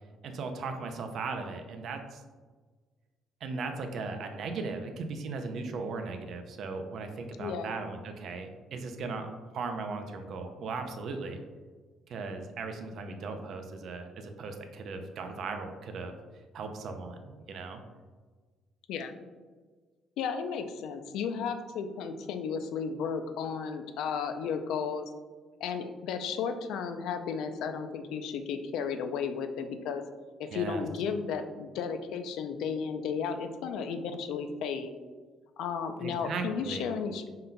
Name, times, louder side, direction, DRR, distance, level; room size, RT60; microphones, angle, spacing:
voice 1, 0.2-2.2 3.4-11.4 12.1-16.1 16.5-17.8 30.5-30.8 36.0-36.8, right 4 dB, 50° right, 5 dB, 0.4 m, -37 dB
voice 2, 7.4-7.7 18.9-19.1 20.2-25.1 25.6-30.0 30.4-34.9 35.6-37.3, left 6 dB, 80° left, 8 dB, 0.4 m, -34 dB
5.4 x 3.8 x 2.2 m, 1.4 s
cardioid pair, 160°, 0 cm